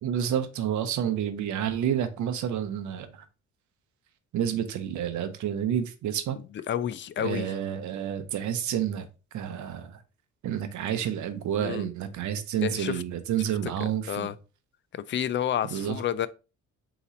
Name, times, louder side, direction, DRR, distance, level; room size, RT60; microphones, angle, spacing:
voice 1, 0.0-3.2 4.3-6.4 7.2-9.1 9.3-10.0 10.4-14.3 15.7-16.0, right 9 dB, 75° right, 0.7 m, -29 dB
voice 2, 6.5-7.5 11.6-11.9 12.6-13.0 13.6-14.4 14.9-16.3, left 10 dB, 40° left, 0.4 m, -30 dB
4.0 x 3.0 x 3.7 m
cardioid pair, 90°, 30 cm